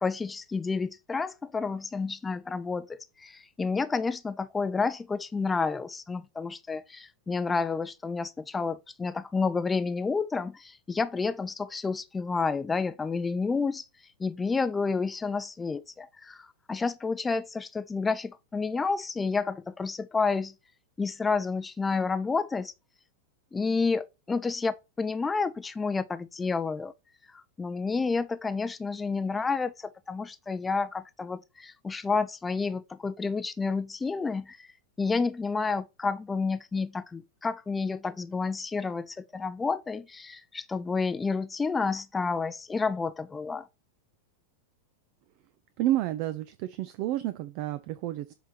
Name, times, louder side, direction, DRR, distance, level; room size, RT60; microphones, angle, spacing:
voice 1, 0.0-13.8 14.2-20.5 21.0-22.7 23.5-26.9 27.3-34.7 35.0-43.7, left 4 dB, 15° left, 0.5 m, -30 dB
voice 2, 45.8-48.3, right 14 dB, 45° right, 0.5 m, -30 dB
7.7 x 3.4 x 4.2 m
figure-of-eight pair, 90°, 0 cm